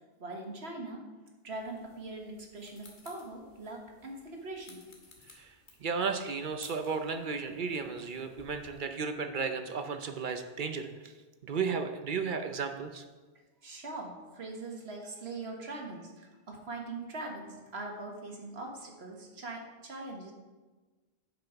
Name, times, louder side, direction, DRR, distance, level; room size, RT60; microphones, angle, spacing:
voice 1, 0.2-1.0 1.4-4.8 13.6-20.3, right 2 dB, 85° right, 1 dB, 1.8 m, -42 dB
sound 1, 1.5-8.8, left 2 dB, 50° left, 1.5 m, -58 dB
voice 2, 5.3-11.1 11.4-13.0, right 5 dB, 55° right, 7 dB, 0.8 m, -34 dB
8.4 x 6.0 x 5.9 m, 1.3 s
omnidirectional pair, 1.1 m